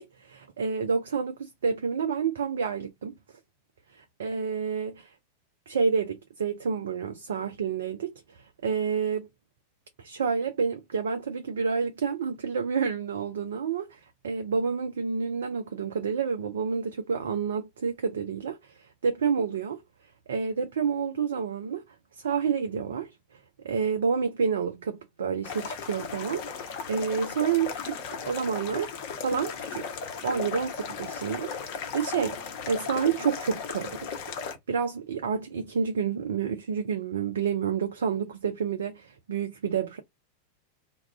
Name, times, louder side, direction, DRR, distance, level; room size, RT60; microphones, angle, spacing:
voice 1, 0.0-3.1 3.9-5.1 5.7-9.3 10.0-19.8 20.3-21.8 22.1-23.1 23.6-28.0 28.3-28.9 29.2-34.2 34.7-40.0, right 6 dB, 65° right, 0.4 m, -29 dB
sound 1, 25.4-34.6, left 6 dB, 45° left, 0.6 m, -36 dB
2.3 x 2.0 x 3.3 m
figure-of-eight pair, 90°, 0 cm